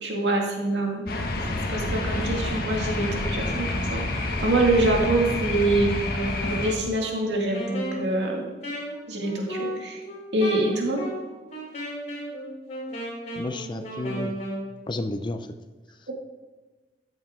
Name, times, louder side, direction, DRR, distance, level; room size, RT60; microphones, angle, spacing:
voice 1, 0.0-1.3 1.7-6.1 6.5-8.5 9.1-10.0 10.3-11.0, right 2 dB, 80° right, 0 dB, 2.1 m, -25 dB
sound 1, 1.1-6.7, left 2 dB, 60° left, 1.2 m, -28 dB
Wind instrument woodwind instrument, 5.9-14.7, right 1 dB, 45° left, 3.6 m, -34 dB
voice 2, 13.4-14.4 14.9-15.5, left 2 dB, 25° left, 8 dB, 0.5 m, -31 dB
13.5 x 7.4 x 3.7 m, 1.3 s
head